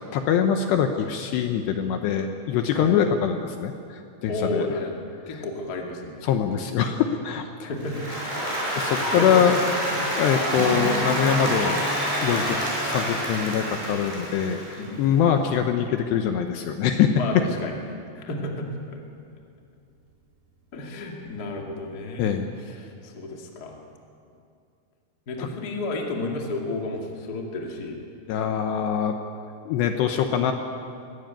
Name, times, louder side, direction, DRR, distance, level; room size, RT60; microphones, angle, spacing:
voice 1, 0.1-4.7 5.3-5.4 6.2-7.7 8.8-9.6 10.1-12.6 12.8-17.2 22.2-22.5 25.4-25.5 28.3-29.2 29.7-30.5, left 8 dB, 75° left, 5 dB, 2.8 m, -24 dB
voice 2, 4.3-6.3 7.6-8.3 9.0-9.4 9.9-10.1 12.3-12.5 14.8-15.3 17.1-19.0 20.7-23.8 25.3-28.0 30.2-30.3, left 2 dB, 35° left, 0 dB, 1.5 m, -32 dB
Applause, 7.8-15.0, equal, 10° right, 7.2 m, -28 dB
Guitar, 10.5-16.3, right 2 dB, 60° right, 5.6 m, -36 dB
21.5 x 16.0 x 9.1 m, 2.5 s
omnidirectional pair, 5.6 m